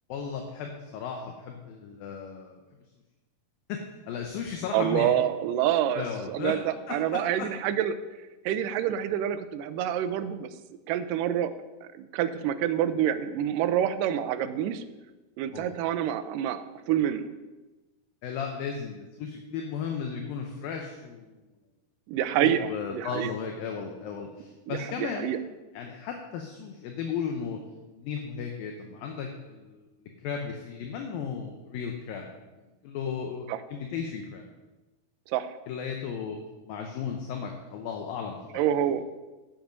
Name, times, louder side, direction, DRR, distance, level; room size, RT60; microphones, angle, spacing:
voice 1, 0.1-2.6 3.7-5.1 5.9-6.6 6.9-7.5 15.5-15.8 18.2-21.4 22.4-25.3 25.7-27.6 27.9-29.9 30.2-32.3 32.8-34.5 35.7-36.4 36.7-38.4, left 6 dB, 75° left, 3 dB, 2.5 m, -35 dB
voice 2, 4.7-8.0 8.5-10.5 10.9-11.5 12.0-14.8 15.4-17.3 22.1-23.3 24.7-25.4 33.5-33.6 35.3-35.5 38.5-39.0, right 10 dB, 80° right, 10 dB, 2.0 m, -27 dB
10.5 x 7.8 x 5.2 m, 1.1 s
omnidirectional pair, 4.5 m